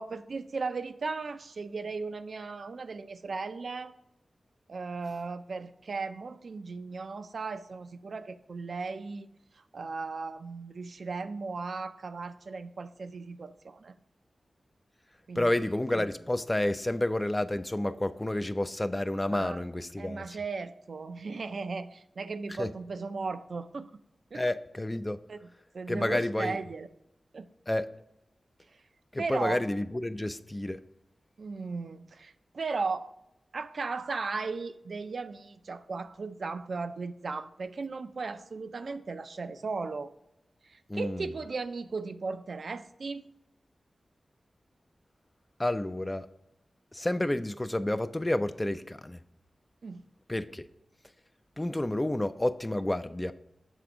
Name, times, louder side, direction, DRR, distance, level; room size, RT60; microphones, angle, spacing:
voice 1, 0.0-4.0 4.7-9.3 9.7-13.9 15.3-15.7 19.3-19.6 20.0-23.9 24.3-24.4 25.3-26.9 27.3-27.5 29.2-29.6 31.4-33.1 33.5-40.1 40.6-43.3 49.8-50.0, right 4 dB, 65° right, 10 dB, 0.4 m, -36 dB
voice 2, 15.4-20.4 22.6-22.7 24.3-25.2 25.9-26.6 27.7-27.9 29.1-30.8 40.9-41.3 45.6-46.3 46.9-49.2 50.3-50.7 51.6-53.3, left 1 dB, 15° left, 12 dB, 0.3 m, -30 dB
7.3 x 3.4 x 4.9 m, 0.84 s
wide cardioid pair, 90°, 0 cm